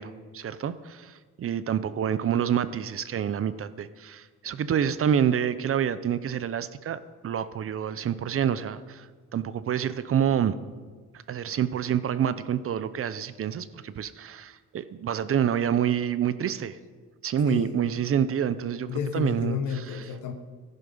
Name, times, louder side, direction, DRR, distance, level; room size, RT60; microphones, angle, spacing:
voice 1, 0.0-9.1 9.3-10.5 11.3-16.8 17.2-19.6, right 9 dB, 45° right, 14 dB, 0.7 m, -27 dB
voice 2, 17.3-17.8 18.9-20.3, left 8 dB, 80° left, 6 dB, 1.2 m, -31 dB
14.5 x 11.0 x 5.5 m, 1.5 s
cardioid pair, 110°, 30 cm